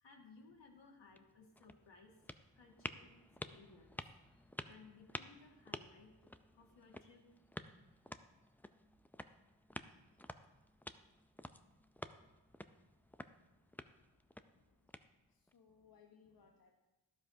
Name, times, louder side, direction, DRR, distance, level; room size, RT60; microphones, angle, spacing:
voice 1, 0.0-2.1 2.5-3.1 3.5-4.0 4.7-6.3 6.5-7.2, left 4 dB, 75° left, 0 dB, 1.9 m, -61 dB
sound 1, 1.0-15.5, left 1 dB, 5° left, 0.3 m, -52 dB
voice 2, 15.3-16.7, left 6 dB, 50° left, 2 dB, 1.0 m, -67 dB
12.5 x 11.5 x 2.7 m, 1.0 s
cardioid pair, 75°, 44 cm